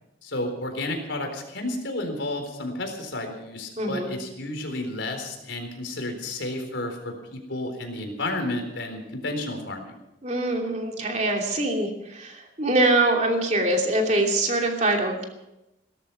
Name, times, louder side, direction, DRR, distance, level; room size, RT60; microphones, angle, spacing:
voice 1, 0.2-9.9, left 2 dB, 85° left, 4 dB, 4.0 m, -31 dB
voice 2, 3.8-4.1 10.2-15.3, right 2 dB, 40° right, 2 dB, 2.8 m, -24 dB
17.5 x 13.5 x 5.7 m, 0.91 s
head